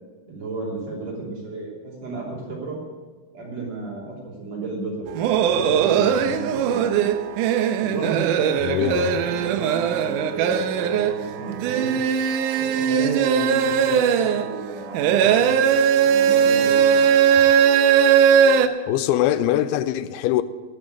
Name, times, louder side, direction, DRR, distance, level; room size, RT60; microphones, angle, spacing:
voice 1, 0.3-2.8 3.3-5.1 5.5-7.0 7.8-12.0 12.6-17.4, right 3 dB, 45° right, 4.0 m, -33 dB
sound 1, 5.1-18.7, right 8 dB, 85° right, 1.8 m, -19 dB
voice 2, 8.6-9.2 18.9-20.4, left 12 dB, 85° left, 2.5 m, -22 dB
10.5 x 9.1 x 7.9 m
omnidirectional pair, 4.5 m